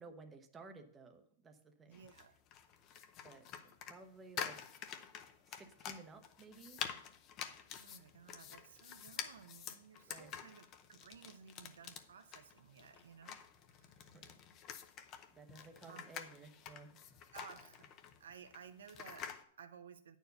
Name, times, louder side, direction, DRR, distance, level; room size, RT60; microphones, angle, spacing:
voice 1, 0.0-2.0 3.2-4.9 5.5-6.8 10.1-10.3 14.1-14.3 15.3-17.0, right 3 dB, 15° right, 5 dB, 0.8 m, -56 dB
sound 1, 1.9-19.4, left 8 dB, 30° left, 0.7 m, -48 dB
voice 2, 1.9-2.4 7.7-13.4 13.7-14.0 15.9-16.1 17.3-17.9 18.2-20.2, right 7 dB, 85° right, 9 dB, 0.8 m, -56 dB
9.2 x 4.6 x 6.8 m, 0.64 s
hypercardioid pair, 150°, 0 cm